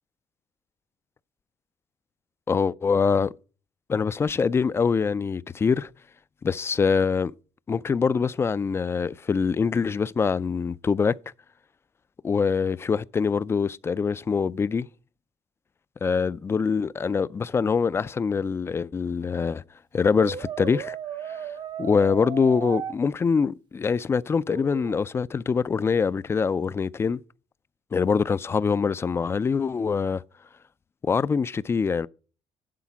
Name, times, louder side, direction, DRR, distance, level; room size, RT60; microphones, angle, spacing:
voice 1, 2.5-3.3 3.9-5.9 6.4-7.3 7.7-11.1 12.2-14.9 16.0-19.6 19.9-21.0 21.8-27.2 27.9-30.2 31.0-32.1, left 5 dB, 25° left, 0.3 m, -24 dB
Brass instrument, 20.2-22.9 24.5-25.1, right 8 dB, 45° right, 0.7 m, -35 dB
11.5 x 4.2 x 5.8 m
cardioid pair, 110°, 11 cm